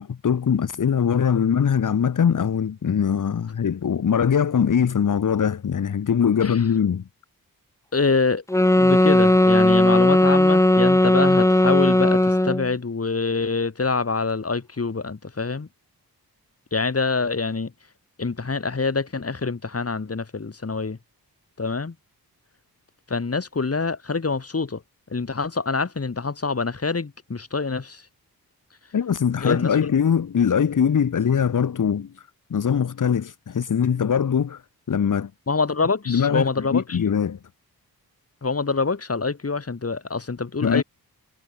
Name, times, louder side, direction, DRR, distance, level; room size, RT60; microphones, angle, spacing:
voice 1, 0.0-7.1 28.9-34.6 34.9-35.3 36.1-37.4 40.6-40.8, left 7 dB, 55° left, 1.3 m, -22 dB
voice 2, 7.9-8.4 8.7-15.7 16.7-17.7 18.2-21.0 21.6-21.9 23.1-24.8 25.1-28.0 29.4-29.8 35.5-37.0 38.4-40.8, left 4 dB, 40° left, 5.5 m, -25 dB
sound 1, 8.5-12.7, left 1 dB, 10° left, 1.0 m, -17 dB
wide cardioid pair, 90°, 38 cm